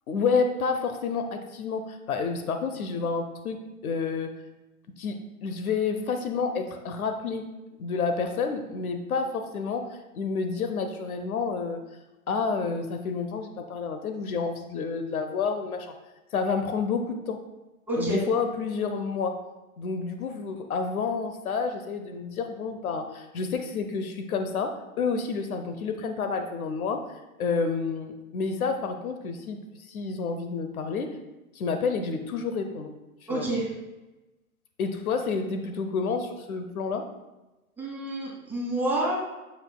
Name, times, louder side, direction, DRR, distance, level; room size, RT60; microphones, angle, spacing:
voice 1, 0.1-3.6 3.8-4.3 5.0-7.4 7.8-9.9 10.1-11.8 12.3-15.9 16.3-17.4 18.0-19.4 19.8-24.7 25.0-27.0 27.4-29.6 29.9-31.1 31.5-32.9 33.3-33.5 34.8-37.0, left 5 dB, 75° left, 7 dB, 0.9 m, -29 dB
voice 2, 17.9-18.2 33.3-33.7 37.8-39.2, right 1 dB, 5° right, -6 dB, 2.1 m, -28 dB
7.7 x 6.9 x 2.3 m, 1.1 s
hypercardioid pair, 125°, 43 cm